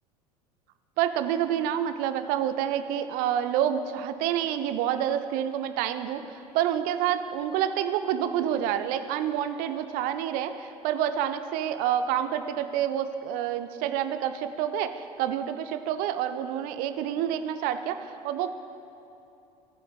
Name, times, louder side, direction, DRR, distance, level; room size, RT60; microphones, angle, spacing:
voice 1, 1.0-18.5, right 10 dB, 45° right, 10 dB, 0.6 m, -28 dB
17.5 x 7.8 x 2.4 m, 2.8 s
figure-of-eight pair, 75°, 20 cm